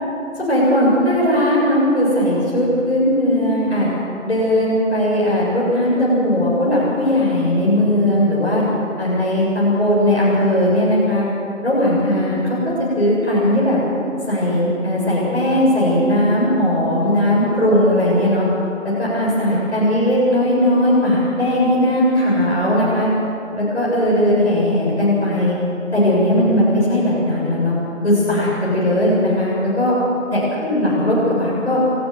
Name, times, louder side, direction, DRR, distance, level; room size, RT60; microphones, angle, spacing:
voice 1, 0.4-3.9 4.2-8.6 9.0-11.3 11.6-13.8 14.3-18.5 18.8-23.1 23.5-25.6 25.9-27.8 28.0-29.9 30.3-31.8, left 1 dB, 55° left, -7 dB, 7.2 m, -18 dB
26.5 x 15.5 x 7.7 m, 2.8 s
figure-of-eight pair, 175°, 39 cm